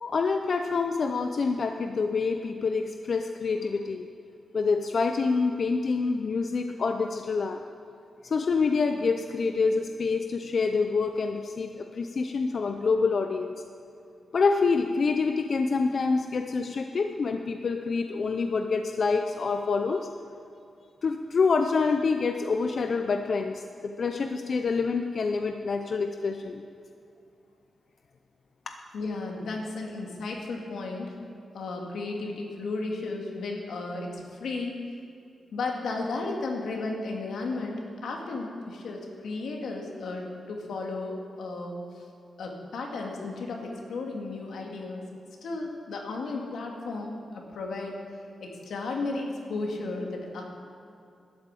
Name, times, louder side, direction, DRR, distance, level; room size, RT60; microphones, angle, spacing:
voice 1, 0.0-4.1 4.5-7.6 8.2-13.6 14.3-20.1 21.0-26.6 28.7-28.8, left 4 dB, 50° left, 5 dB, 0.6 m, -27 dB
voice 2, 28.9-31.2 31.5-34.8 35.5-42.0 42.4-45.0 45.4-48.0 48.4-50.4, left 3 dB, 85° left, 0 dB, 2.2 m, -34 dB
12.0 x 8.6 x 8.4 m, 2.6 s
wide cardioid pair, 135°, 0 cm